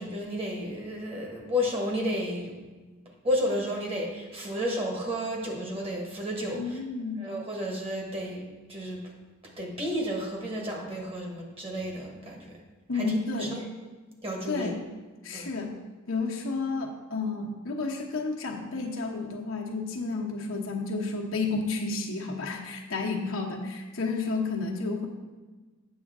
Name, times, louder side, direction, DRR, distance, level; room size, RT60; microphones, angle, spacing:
voice 1, 0.0-2.6 3.2-6.8 7.2-8.4 8.7-9.0 9.6-12.6 12.9-13.1 13.4-13.5 14.2-14.7 15.3-15.5, equal, 30° right, 0 dB, 1.5 m, -32 dB
voice 2, 6.5-7.3 12.9-13.6 14.5-14.8 15.2-15.7 16.1-25.1, left 3 dB, 80° left, 0 dB, 1.1 m, -31 dB
8.3 x 6.4 x 3.6 m, 1.3 s
head